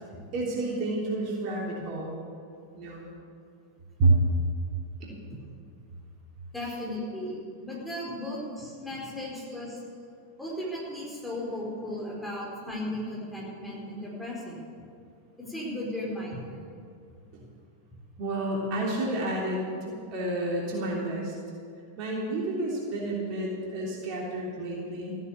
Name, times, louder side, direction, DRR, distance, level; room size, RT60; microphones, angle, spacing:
voice 1, 0.3-2.2 2.7-3.0 4.0-4.1 5.0-5.2 8.2-8.3 9.5-9.6 17.3-17.4 18.2-21.3 22.0-25.1, right 2 dB, 40° right, -3 dB, 3.3 m, -29 dB
voice 2, 6.5-9.8 10.4-14.7 15.4-16.6, left 1 dB, ahead, -5 dB, 4.8 m, -36 dB
15.0 x 9.7 x 8.2 m, 2.4 s
figure-of-eight pair, 90°, 0 cm